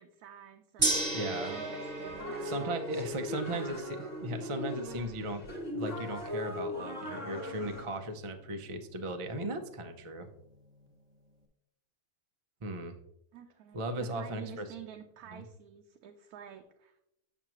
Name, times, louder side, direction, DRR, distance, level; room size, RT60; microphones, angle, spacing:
voice 1, 0.0-1.1 1.5-3.8 13.3-17.0, right 9 dB, 75° right, 4 dB, 1.1 m, -50 dB
sound 1, 0.8-7.8, left 1 dB, 30° left, 1.2 m, -39 dB
Gong, 0.8-11.0, right 2 dB, 30° right, 0.8 m, -39 dB
voice 2, 1.1-1.5 2.4-10.3 12.6-13.0 13.7-14.7 15.3-15.4, right 1 dB, 60° right, 6 dB, 0.3 m, -37 dB
9.0 x 6.0 x 3.0 m, 0.82 s
omnidirectional pair, 1.7 m